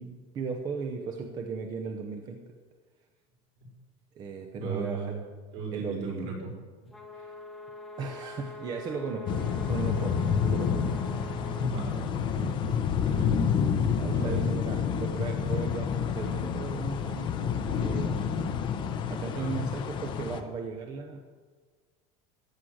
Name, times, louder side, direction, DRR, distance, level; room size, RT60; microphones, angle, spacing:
voice 1, 0.0-2.4 4.1-5.1 5.7-6.3 7.1-7.4 8.0-10.8 13.5-13.6 14.0-18.3 19.1-21.2, right 4 dB, 25° right, 4 dB, 0.8 m, -36 dB
voice 2, 4.5-5.2 5.5-6.5 11.6-12.7 13.0-13.3 14.1-14.4 19.3-19.7, right 3 dB, 60° right, -2 dB, 5.5 m, -36 dB
sound 1, 6.9-11.7, left 1 dB, ahead, 1.2 m, -44 dB
sound 2, 9.3-20.4, left 7 dB, 30° left, 0.8 m, -29 dB
15.0 x 9.4 x 6.4 m, 1.5 s
cardioid pair, 180°, 17 cm